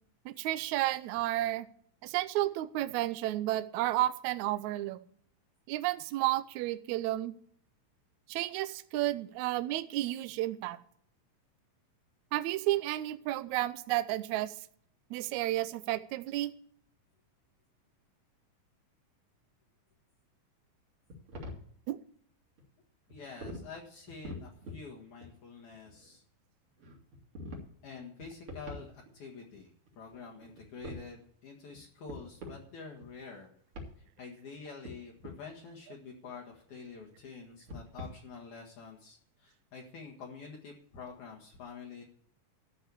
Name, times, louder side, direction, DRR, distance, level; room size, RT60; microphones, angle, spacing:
voice 1, 0.2-1.7 2.0-5.0 5.7-7.3 8.3-10.8 12.3-14.5 15.1-16.5 21.9-22.0, right 15 dB, 90° right, 12 dB, 1.6 m, -32 dB
sound 1, 21.1-21.7 22.6-22.7 23.1-23.6 24.0-24.9 25.2-26.2 26.8-27.7 27.9-29.3 29.5-29.6 29.9-31.1 31.7-31.8 32.0-32.7 32.9-33.3 33.7-33.9 34.5-35.3 36.1-37.2 37.5-38.0, left 1 dB, 40° right, 2.9 m, -45 dB
voice 2, 23.1-26.2 27.8-33.5 34.0-42.0, left 5 dB, 60° left, -1 dB, 2.8 m, -47 dB
13.0 x 5.6 x 8.4 m, 0.62 s
omnidirectional pair, 4.1 m